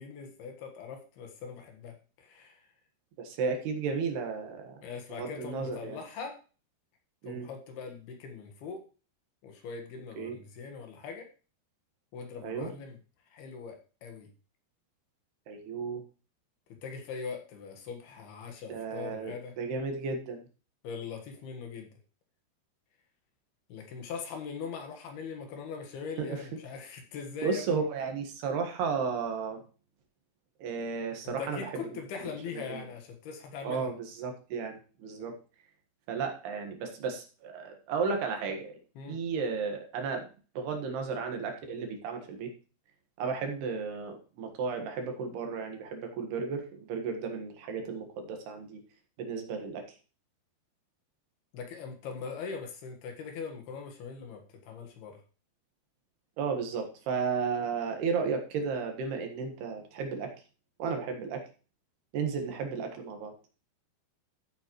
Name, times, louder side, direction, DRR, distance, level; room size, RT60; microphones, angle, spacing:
voice 1, 0.0-2.7 4.8-6.4 7.2-8.8 9.4-11.3 12.1-13.0 13.3-14.3 16.7-19.5 20.8-21.9 23.7-27.7 31.2-33.9 39.0-39.2 51.5-55.2, left 5 dB, 70° left, 4 dB, 3.4 m, -41 dB
voice 2, 3.2-4.8 5.2-6.0 7.2-7.5 10.2-10.4 12.4-12.7 15.5-16.0 18.7-20.4 26.2-26.4 27.4-29.6 30.6-31.7 32.7-32.8 33.6-35.4 36.1-38.7 39.1-40.3 40.6-42.5 43.2-48.8 49.2-49.9 56.4-60.3 60.8-61.4 62.1-63.3, right 5 dB, 70° right, 4 dB, 3.5 m, -33 dB
14.0 x 8.1 x 3.1 m, 0.36 s
omnidirectional pair, 4.9 m